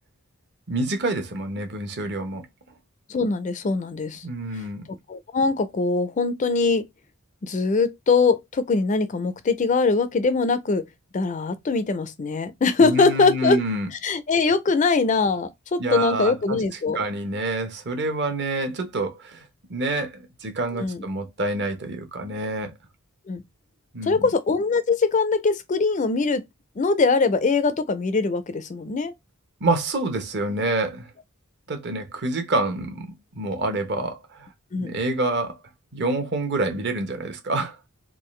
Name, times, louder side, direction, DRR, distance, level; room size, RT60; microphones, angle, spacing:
voice 1, 0.7-2.5 4.2-4.8 12.8-13.9 15.8-16.6 16.9-22.7 23.9-24.3 29.6-31.1 31.7-34.5 34.7-35.6 35.9-37.8, right 2 dB, 50° right, 0.9 m, -27 dB
voice 2, 3.1-4.2 5.1-6.9 7.4-10.9 11.1-13.6 14.0-17.0 20.8-21.0 23.3-23.4 24.1-26.4 26.8-29.1 34.7-35.0, left 4 dB, 35° left, 0.4 m, -22 dB
3.7 x 2.4 x 3.1 m
head